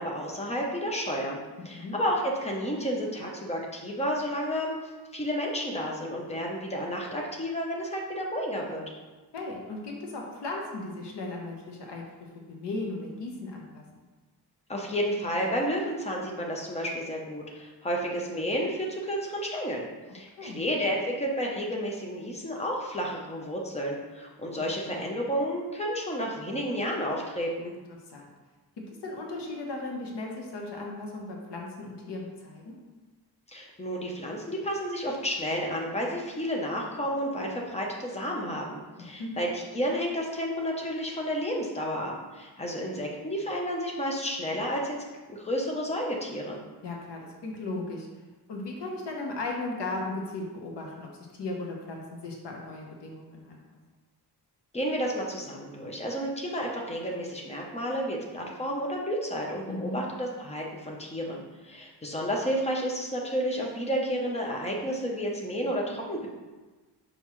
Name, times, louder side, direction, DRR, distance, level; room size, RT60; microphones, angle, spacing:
voice 1, 0.0-1.4 1.6-8.8 14.7-19.9 20.1-27.7 33.5-45.0 45.3-46.6 54.7-66.3, equal, 15° left, -1 dB, 0.8 m, -31 dB
voice 2, 1.6-2.0 9.3-13.8 20.4-20.6 24.6-24.7 27.9-28.3 29.0-32.8 39.0-39.3 46.8-48.1 48.5-53.6 59.7-60.0, left 2 dB, 75° left, 0 dB, 1.0 m, -36 dB
5.7 x 5.4 x 3.1 m, 1.2 s
wide cardioid pair, 155°, 42 cm